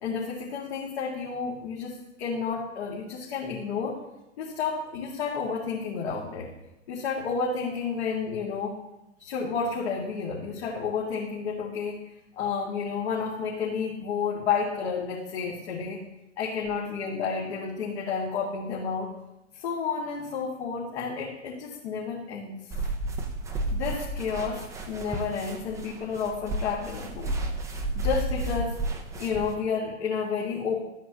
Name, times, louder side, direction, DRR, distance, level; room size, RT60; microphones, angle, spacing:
voice 1, 0.0-4.0 4.4-6.5 6.9-8.8 9.2-12.0 12.4-16.0 16.4-19.1 19.5-22.5 23.7-27.3 28.0-28.8 29.2-30.8, left 5 dB, 55° left, -5 dB, 2.3 m, -31 dB
sound 1, 22.7-29.6, right 1 dB, 10° right, 0.8 m, -32 dB
13.5 x 9.2 x 2.9 m, 0.93 s
figure-of-eight pair, 115°, 38 cm